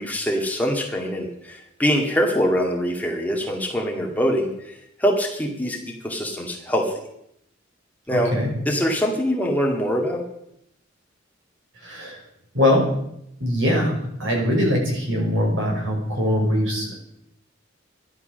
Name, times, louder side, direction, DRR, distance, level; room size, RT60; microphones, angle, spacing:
voice 1, 0.0-6.9 8.1-8.3 8.7-10.2, equal, 10° left, 0 dB, 2.0 m, -24 dB
voice 2, 8.1-8.5 11.8-12.2 12.5-12.9 13.4-17.0, left 1 dB, 65° right, 0 dB, 5.3 m, -22 dB
12.0 x 11.5 x 6.5 m, 0.78 s
head